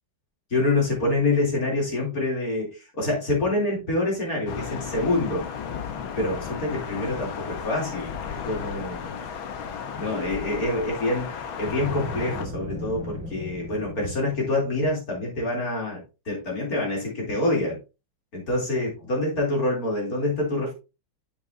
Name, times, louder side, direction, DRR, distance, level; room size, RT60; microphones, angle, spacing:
voice 1, 0.5-5.4 6.2-9.2 10.0-11.3 11.6-16.0 16.3-17.8 18.3-20.7, left 2 dB, 45° left, -2 dB, 3.5 m, -26 dB
Thunder, 4.5-12.5, left 7 dB, 80° left, 1.9 m, -34 dB
Boom, 11.6-14.7, left 1 dB, 5° right, 1.7 m, -36 dB
8.4 x 7.3 x 2.7 m, 0.29 s
omnidirectional pair, 2.2 m